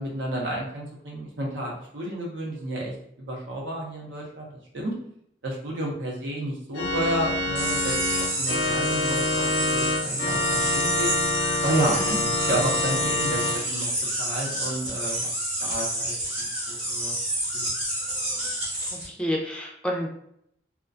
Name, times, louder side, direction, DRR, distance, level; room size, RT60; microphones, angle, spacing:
voice 1, 0.0-4.5 4.7-4.9 5.4-11.1 11.6-13.9 14.2-15.3 15.6-17.1 17.5-17.7, right 1 dB, 85° right, -1 dB, 0.7 m, -31 dB
Organ, 6.7-13.6, left 2 dB, 70° left, 0.5 m, -26 dB
sound 1, 7.6-19.1, right 1 dB, 35° right, 0.7 m, -29 dB
voice 2, 19.2-20.1, equal, 5° left, -1 dB, 0.3 m, -29 dB
2.4 x 2.1 x 2.4 m, 0.70 s
head